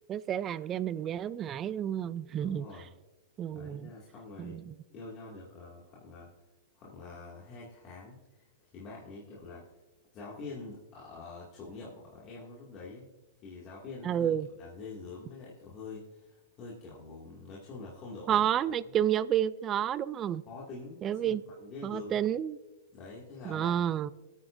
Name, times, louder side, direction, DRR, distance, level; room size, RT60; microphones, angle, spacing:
voice 1, 0.1-2.7 3.4-3.9 4.4-4.7 14.0-14.5 18.3-20.4 21.0-21.4 21.8-22.6 23.4-24.1, right 10 dB, 25° right, 17 dB, 0.3 m, -30 dB
voice 2, 2.3-2.9 3.5-4.6 4.9-6.3 6.7-9.7 10.1-13.1 13.4-18.4 20.5-22.2 22.9-23.9, left 3 dB, 30° left, -6 dB, 2.2 m, -46 dB
25.5 x 8.9 x 2.6 m, 1.1 s
hypercardioid pair, 145°, 0 cm